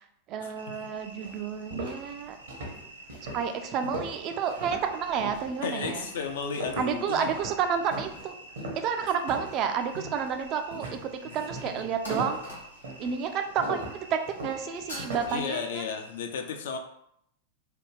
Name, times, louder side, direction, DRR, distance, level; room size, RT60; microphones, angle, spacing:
voice 1, 0.0-2.4 3.3-6.1 6.8-8.3 8.8-12.4 13.0-15.9, right 7 dB, 35° right, 6 dB, 0.3 m, -30 dB
sound 1, 0.6-16.3, right 1 dB, 90° right, 0.5 m, -49 dB
sound 2, 0.7-0.8 1.2-9.7 9.9-10.3 10.7-15.4, right 1 dB, 60° right, 0.8 m, -39 dB
voice 2, 5.6-7.3 10.8-10.9 11.6-12.0 15.3-16.8, left 6 dB, 60° left, 5 dB, 0.4 m, -34 dB
sound 3, 9.8-10.7 11.0-11.1 12.0-13.0 14.9-15.4, equal, 80° left, 1.1 m, -41 dB
3.4 x 2.3 x 3.1 m, 0.73 s
figure-of-eight pair, 90°, 0 cm